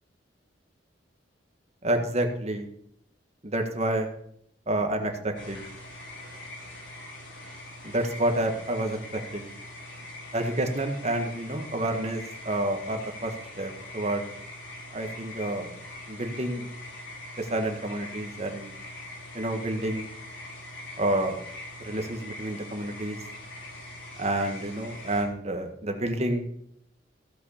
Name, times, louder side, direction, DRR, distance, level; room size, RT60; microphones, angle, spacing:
voice 1, 1.8-2.7 3.4-4.1 4.7-5.6 7.8-9.5 10.3-14.2 14.9-15.7 16.1-16.7 17.4-18.7 19.3-20.1 21.0-21.4 21.8-23.2 24.2-26.5, right 1 dB, 35° right, 5 dB, 1.7 m, -29 dB
sound 1, 5.3-25.2, left 1 dB, 90° left, 5.5 m, -42 dB
15.5 x 5.9 x 6.6 m, 0.70 s
head